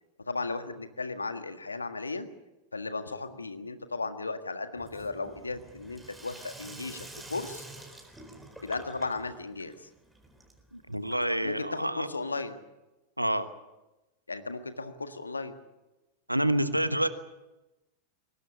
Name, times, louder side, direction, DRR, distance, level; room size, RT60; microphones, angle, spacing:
voice 1, 0.3-2.3 2.7-7.6 8.6-9.9 11.4-12.6 14.3-15.5, left 3 dB, 80° left, 9 dB, 1.7 m, -35 dB
Sink (filling or washing), 4.8-11.6, right 2 dB, 5° right, 4.3 m, -48 dB
voice 2, 10.7-12.1 13.2-13.5 16.3-17.1, right 1 dB, 90° right, 12 dB, 1.2 m, -28 dB
21.5 x 19.0 x 8.5 m, 1.0 s
figure-of-eight pair, 90°, 0 cm